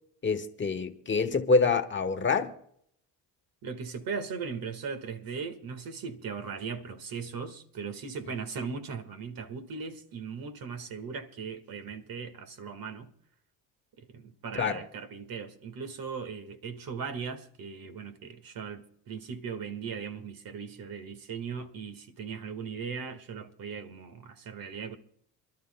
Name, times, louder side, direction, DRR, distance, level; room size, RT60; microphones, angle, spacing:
voice 1, 0.2-2.5 14.5-14.8, left 4 dB, 30° left, 1.2 m, -26 dB
voice 2, 3.6-13.1 14.0-25.0, right 5 dB, 55° right, 1.7 m, -38 dB
28.0 x 12.5 x 2.2 m
cardioid pair, 115°, 41 cm